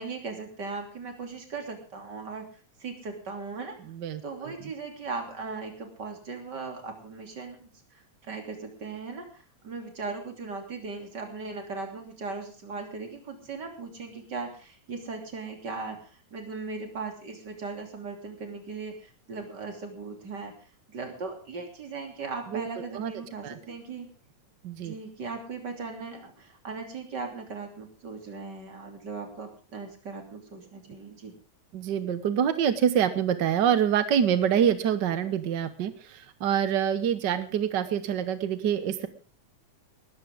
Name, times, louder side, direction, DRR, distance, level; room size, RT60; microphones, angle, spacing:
voice 1, 0.0-2.5 2.8-3.8 4.2-16.0 16.3-20.5 20.9-24.1 24.8-31.3, right 4 dB, 35° right, 3 dB, 3.4 m, -38 dB
voice 2, 3.9-4.5 22.5-22.7 22.9-23.1 23.4-23.6 24.6-24.9 31.7-39.1, right 9 dB, 80° right, 11 dB, 1.0 m, -26 dB
20.5 x 13.0 x 3.7 m, 0.35 s
omnidirectional pair, 3.5 m